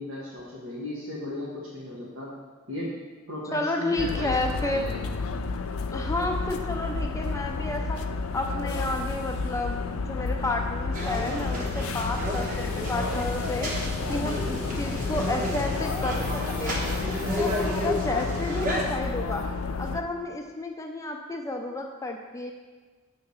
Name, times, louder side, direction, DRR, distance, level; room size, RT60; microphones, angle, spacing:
voice 1, 0.0-2.3 2.7-2.9 3.3-5.1, left 1 dB, 75° right, -7 dB, 1.4 m, -36 dB
voice 2, 3.5-4.8 5.9-8.0 8.3-13.7 14.1-16.8 17.4-19.4 19.8-22.5, left 2 dB, 15° left, 2 dB, 0.6 m, -31 dB
sound 1, 4.0-20.0, left 4 dB, 85° left, 0.4 m, -31 dB
sound 2, 10.9-18.8, equal, 40° right, 1.2 m, -31 dB
7.0 x 3.7 x 6.4 m, 1.4 s
head